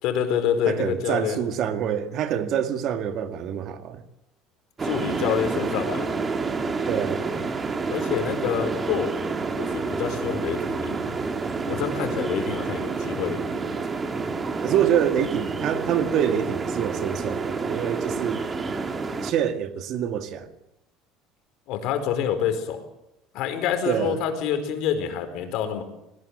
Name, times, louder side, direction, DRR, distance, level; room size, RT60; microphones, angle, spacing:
voice 1, 0.0-1.4 4.8-6.1 7.9-9.1 9.6-11.2 11.7-13.6 21.7-22.8 23.3-25.8, left 8 dB, 65° left, 4.6 m, -27 dB
voice 2, 0.7-4.0 6.9-7.3 14.6-18.4 19.2-20.5 23.8-24.2, right 9 dB, 55° right, 2.0 m, -26 dB
sound 1, 4.8-19.3, right 4 dB, 25° right, 2.3 m, -29 dB
20.5 x 19.0 x 8.1 m
supercardioid pair, 120°, 0 cm